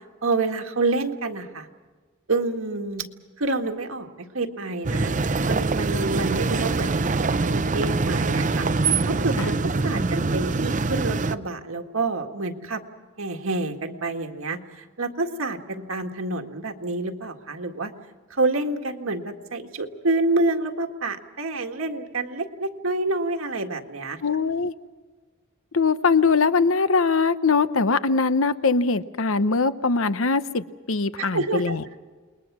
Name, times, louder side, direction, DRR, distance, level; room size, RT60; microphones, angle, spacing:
voice 1, 0.2-1.7 2.3-3.1 3.4-5.1 5.5-6.9 7.4-8.7 9.1-12.8 13.2-17.9 18.3-24.2 31.2-32.0, right 2 dB, 85° right, 4 dB, 1.9 m, -28 dB
sound 1, 4.8-11.4, right 3 dB, 40° right, 0.7 m, -24 dB
voice 2, 24.2-24.7 25.7-31.8, left 4 dB, 80° left, 13 dB, 0.9 m, -22 dB
29.0 x 21.5 x 6.2 m, 1.4 s
head